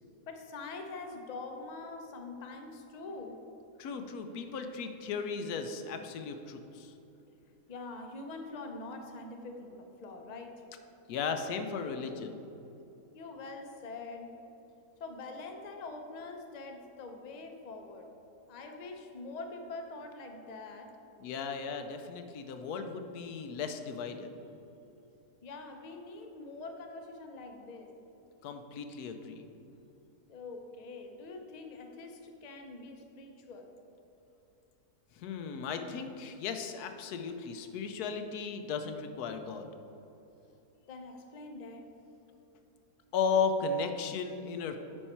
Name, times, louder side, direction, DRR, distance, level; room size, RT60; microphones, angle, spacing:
voice 1, 0.3-3.4 7.7-10.6 13.1-14.3 15.0-18.1 18.5-20.9 25.4-27.9 30.3-33.7 40.9-41.9, left 3 dB, 40° left, 4 dB, 0.6 m, -44 dB
voice 2, 3.8-6.9 11.1-12.4 21.2-24.3 28.4-29.5 35.1-39.7 43.1-44.8, left 5 dB, 85° left, 7 dB, 1.2 m, -35 dB
9.2 x 5.5 x 4.4 m, 2.9 s
omnidirectional pair, 1.6 m